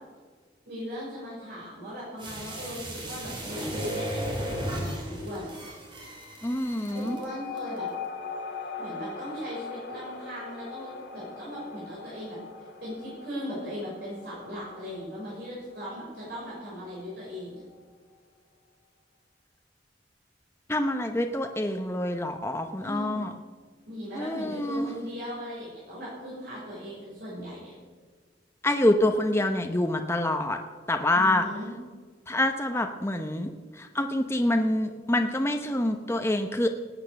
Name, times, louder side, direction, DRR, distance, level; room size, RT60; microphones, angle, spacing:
voice 1, 0.7-5.5 6.9-7.9 8.8-17.6 22.8-23.3 23.9-27.7 31.1-31.7, equal, 60° right, -8 dB, 5.9 m, -38 dB
sound 1, 2.2-7.2 7.6-7.7, right 1 dB, 30° right, 3.1 m, -35 dB
voice 2, 6.4-7.2 20.7-23.3 24.2-24.9 28.6-30.6 30.9-31.5 32.3-33.5 33.8-36.7, left 1 dB, 15° left, 5 dB, 0.7 m, -26 dB
sound 2, 6.9-17.8, left 4 dB, 65° left, 1.5 m, -41 dB
18.5 x 8.8 x 6.8 m, 1.5 s
head